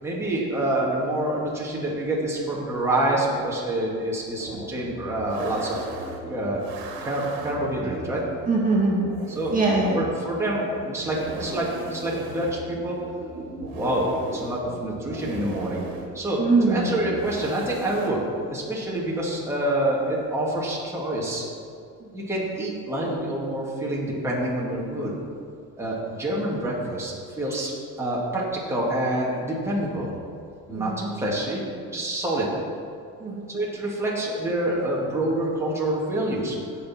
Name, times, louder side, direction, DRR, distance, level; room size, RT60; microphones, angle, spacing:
voice 1, 0.0-5.9 6.3-6.6 7.0-8.2 9.3-9.6 9.9-13.0 13.7-15.8 16.1-18.2 18.5-21.4 22.1-25.1 25.8-30.1 30.7-31.6 31.9-32.5 33.5-36.6, right 1 dB, 10° right, -5 dB, 2.3 m, -27 dB
sound 1, 4.4-18.1, right 2 dB, 90° right, 1.9 m, -38 dB
voice 2, 8.5-9.1 9.5-9.9 16.4-16.9 22.0-22.1 30.7-31.0 33.2-33.5, right 3 dB, 25° right, -4 dB, 2.2 m, -22 dB
17.0 x 6.4 x 4.4 m, 2.4 s
cardioid pair, 115°, 35 cm